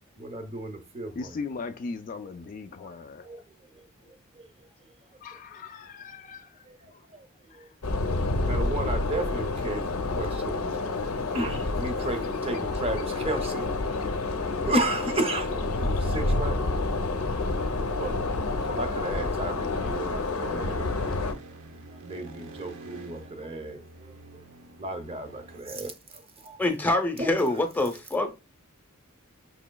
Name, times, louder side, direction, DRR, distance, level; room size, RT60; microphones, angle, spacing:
voice 1, 0.2-1.3 2.8-3.0 3.2-3.4 6.7-6.8 7.1-7.2 7.6-7.7 8.1-8.2 8.4-10.7 11.3-13.6 14.6-16.7 17.0-17.2 17.9-18.2 18.6-20.9 21.2-21.3 22.0-23.8 24.1-24.2 24.8-25.9 26.4-26.6 27.2-27.3, right 2 dB, 25° right, 0.6 m, -33 dB
voice 2, 1.2-3.4 5.2-6.5 6.9-7.0 7.5-7.6, left 4 dB, 40° left, 0.3 m, -38 dB
sound 1, 7.8-21.3, left 3 dB, 80° left, 0.6 m, -28 dB
sound 2, 19.7-25.6, right 3 dB, 75° right, 0.7 m, -47 dB
voice 3, 26.6-28.3, left 2 dB, 10° left, 0.7 m, -25 dB
5.6 x 2.9 x 2.2 m
head